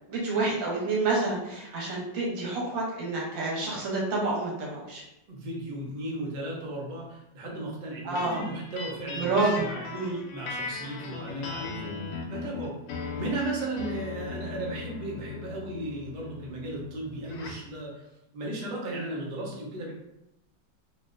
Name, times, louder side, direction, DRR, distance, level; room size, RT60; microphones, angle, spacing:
voice 1, 0.1-5.0 8.0-8.4 9.1-10.2, right 3 dB, 85° right, -4 dB, 1.7 m, -28 dB
voice 2, 5.3-12.0 12.3-18.0 18.3-19.9, right 2 dB, 70° right, -3 dB, 0.4 m, -36 dB
sound 1, 8.2-17.7, left 4 dB, 70° left, 1.1 m, -38 dB
3.4 x 2.6 x 2.5 m, 0.87 s
omnidirectional pair, 2.0 m